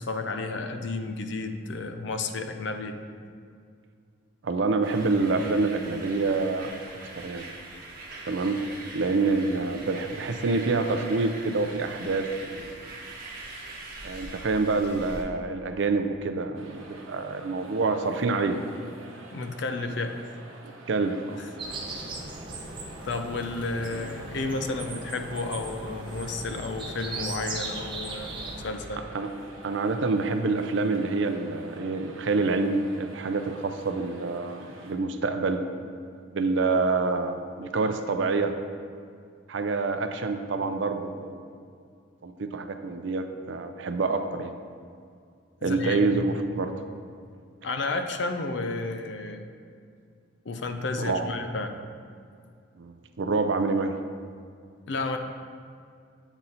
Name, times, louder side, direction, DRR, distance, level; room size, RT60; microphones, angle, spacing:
voice 1, 0.0-3.0 19.3-20.2 23.0-28.4 28.6-29.0 45.6-46.2 47.6-49.4 50.5-51.8 54.9-55.2, left 3 dB, 60° left, 6 dB, 0.5 m, -32 dB
voice 2, 4.4-7.4 8.3-8.6 8.9-12.8 14.0-18.6 20.9-21.4 23.9-24.0 29.1-29.3 29.6-35.6 36.3-38.5 39.5-41.4 42.2-44.5 45.6-46.7 51.0-51.3 52.8-54.0, right 3 dB, 65° right, 7 dB, 0.4 m, -27 dB
sound 1, 4.8-15.2, right 2 dB, 45° right, 1.0 m, -42 dB
sound 2, 16.5-34.9, right 2 dB, 80° right, 0.9 m, -47 dB
sound 3, 21.6-28.6, right 2 dB, 25° right, 0.6 m, -38 dB
8.0 x 4.0 x 4.2 m, 2.3 s
head